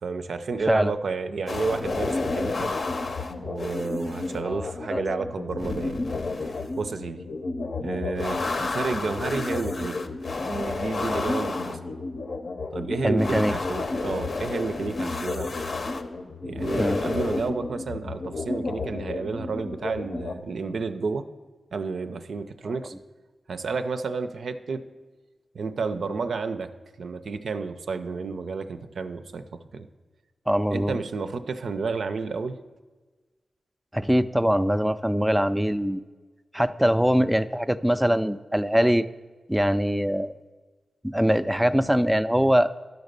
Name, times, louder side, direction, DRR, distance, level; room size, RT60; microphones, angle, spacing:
voice 1, 0.0-2.7 3.4-6.0 6.4-7.2 7.8-10.0 10.4-11.8 12.7-15.5 16.4-21.3 21.7-22.9 23.5-24.9 25.5-26.7 27.0-29.9 30.7-32.6, right 4 dB, 80° right, 9 dB, 0.5 m, -31 dB
sound 1, 1.5-20.4, left 3 dB, 60° left, 0.6 m, -31 dB
voice 2, 4.4-5.0 13.0-13.5 16.8-17.0 30.5-31.0 33.9-36.0 36.5-39.1 39.5-40.3 41.0-42.7, equal, 5° right, 13 dB, 0.3 m, -22 dB
11.5 x 4.0 x 6.6 m, 1.3 s
wide cardioid pair, 80°, 0 cm